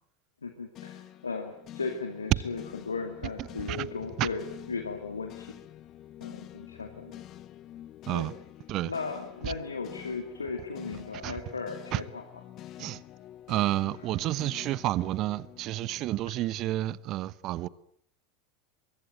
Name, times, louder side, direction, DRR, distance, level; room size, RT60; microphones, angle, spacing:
voice 1, 0.4-5.6 6.2-7.2 8.1-8.3 8.8-12.2, left 4 dB, 75° left, 2.2 m, -36 dB
sound 1, 0.7-17.0, left 12 dB, 35° left, 1.1 m, -48 dB
voice 2, 13.5-17.7, right 15 dB, 40° right, 1.0 m, -30 dB
23.5 x 23.0 x 8.9 m
figure-of-eight pair, 80°, 0 cm